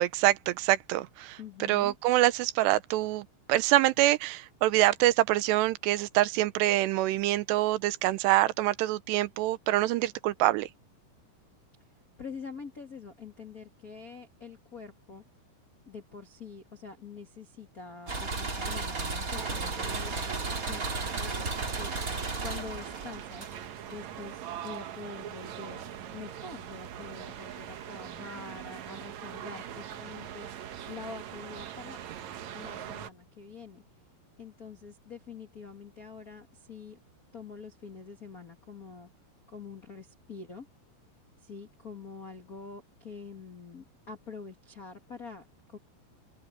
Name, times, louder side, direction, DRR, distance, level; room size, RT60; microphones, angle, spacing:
voice 1, 0.0-10.7, right 16 dB, 80° right, 2.9 m, -25 dB
voice 2, 1.4-1.9 12.2-15.2 15.8-23.5 23.9-32.0 32.5-33.8 34.4-37.0 37.3-39.1 39.5-40.6 41.4-45.8, left 4 dB, 75° left, 0.8 m, -45 dB
sound 1, 18.1-23.9, right 3 dB, 25° right, 2.0 m, -34 dB
sound 2, 19.4-33.1, right 10 dB, 65° right, 1.8 m, -42 dB
omnidirectional pair, 4.9 m